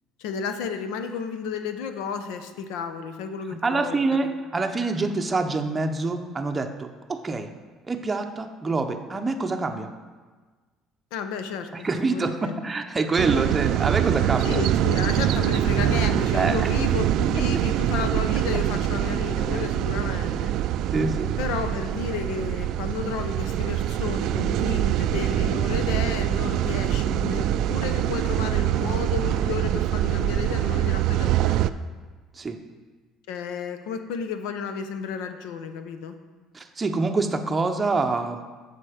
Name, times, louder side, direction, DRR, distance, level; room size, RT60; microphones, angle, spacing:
voice 1, 0.2-4.3 11.1-12.5 14.4-20.5 21.4-31.7 33.3-36.2, left 6 dB, 90° left, 8 dB, 0.8 m, -32 dB
voice 2, 3.6-7.5 7.9-9.9 11.7-14.6 16.3-16.6 19.5-19.6 20.9-21.4 32.3-32.6 36.5-38.4, right 3 dB, 20° right, 5 dB, 0.6 m, -26 dB
sound 1, 13.2-31.7, right 12 dB, 65° right, 0.3 m, -24 dB
8.8 x 6.8 x 5.0 m, 1.4 s
cardioid pair, 135°, 0 cm